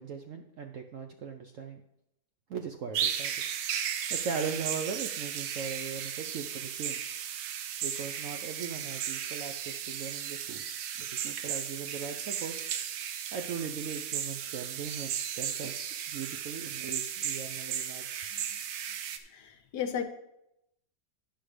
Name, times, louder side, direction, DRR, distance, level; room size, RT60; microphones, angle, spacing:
voice 1, 0.0-1.8 2.5-3.4 4.1-7.0 7.8-12.6 13.3-18.1, right 6 dB, 65° right, 5 dB, 0.8 m, -39 dB
sound 1, 2.9-19.2, right 9 dB, 85° right, 1.4 m, -35 dB
voice 2, 19.2-20.0, left 8 dB, 70° left, 8 dB, 1.3 m, -36 dB
10.5 x 5.7 x 4.9 m, 0.82 s
omnidirectional pair, 1.9 m